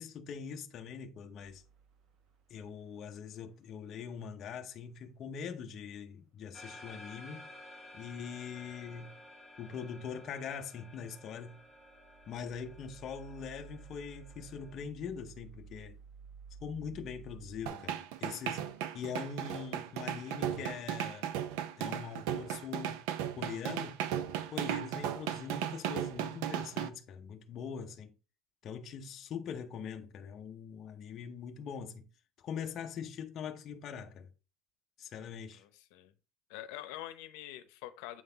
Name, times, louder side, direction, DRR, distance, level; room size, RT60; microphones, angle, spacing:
voice 1, 0.0-1.6 2.5-7.5 7.9-9.2 9.6-11.7 12.3-16.0 16.6-18.7 18.9-21.3 21.8-23.1 23.3-24.0 24.5-28.1 28.6-32.1 32.4-34.3 35.0-35.6, left 6 dB, 35° left, 0.6 m, -42 dB
sound 1, 1.4-3.0 11.5-17.6, right 6 dB, 50° right, 1.0 m, -54 dB
sound 2, 6.5-14.8, left 1 dB, 5° right, 1.5 m, -53 dB
sound 3, 17.7-26.9, right 10 dB, 75° right, 0.6 m, -36 dB
voice 2, 35.5-36.1 36.5-38.2, left 13 dB, 75° left, 0.7 m, -45 dB
7.7 x 3.9 x 3.9 m
cardioid pair, 165°, 0 cm